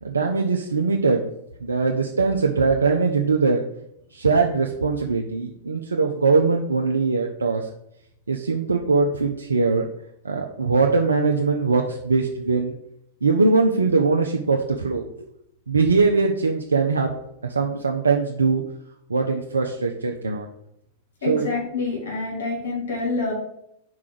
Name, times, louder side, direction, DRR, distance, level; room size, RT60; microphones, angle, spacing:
voice 1, 0.0-1.3 1.6-3.6 4.1-7.7 8.3-9.9 10.2-12.7 13.2-15.3 15.7-17.1 17.4-18.6 19.1-20.5 21.3-21.5, right 4 dB, 75° right, 2 dB, 0.5 m, -21 dB
voice 2, 21.2-23.3, left 3 dB, 65° left, -2 dB, 2.3 m, -27 dB
4.8 x 4.7 x 6.0 m, 0.76 s
figure-of-eight pair, 95°, 0 cm